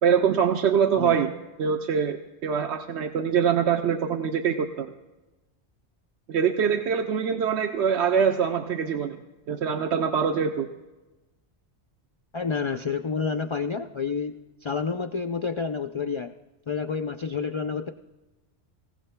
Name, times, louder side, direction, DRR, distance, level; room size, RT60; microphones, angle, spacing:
voice 1, 0.0-1.3 1.6-4.9 6.3-9.2 9.5-10.7, right 7 dB, 75° right, 5 dB, 1.0 m, -24 dB
voice 2, 12.3-16.3 16.7-17.9, left 5 dB, 45° left, 6 dB, 0.4 m, -29 dB
24.5 x 16.5 x 2.2 m, 1.1 s
omnidirectional pair, 1.2 m